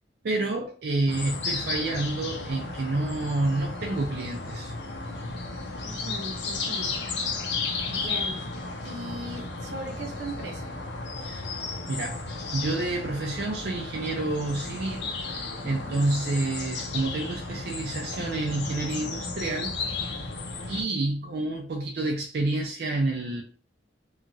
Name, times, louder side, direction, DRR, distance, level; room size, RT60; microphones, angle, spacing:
voice 1, 0.2-4.7 11.2-11.5 11.9-19.7 20.7-23.4, right 2 dB, 60° right, 0.4 m, -29 dB
sound 1, 1.1-20.8, left 3 dB, 70° left, 0.5 m, -34 dB
voice 2, 5.8-6.9 7.5-8.4 8.8-10.7 15.6-15.9, right 1 dB, 90° right, 0.8 m, -39 dB
2.9 x 2.3 x 2.6 m
head